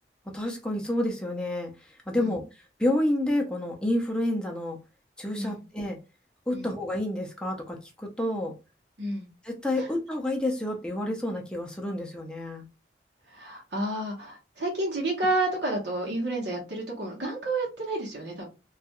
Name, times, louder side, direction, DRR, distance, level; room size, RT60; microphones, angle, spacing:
voice 1, 0.3-1.7 2.1-2.4 2.8-4.8 5.2-6.0 6.5-8.5 9.4-12.6, left 1 dB, 5° left, 0 dB, 0.4 m, -29 dB
voice 2, 13.3-18.5, right 2 dB, 75° right, -2 dB, 0.8 m, -30 dB
2.3 x 2.1 x 2.8 m, 0.29 s
head